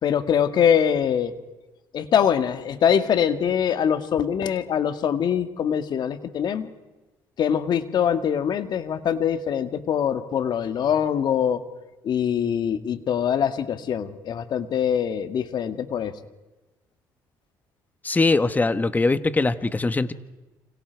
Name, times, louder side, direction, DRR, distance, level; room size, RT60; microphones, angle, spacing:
voice 1, 0.0-1.3 1.9-6.7 7.4-11.6 12.0-16.1, left 8 dB, 55° left, 10 dB, 1.8 m, -23 dB
voice 2, 18.0-20.1, left 3 dB, 20° left, 13 dB, 1.3 m, -21 dB
29.5 x 26.0 x 4.7 m, 1.1 s
cardioid pair, 95°, 9 cm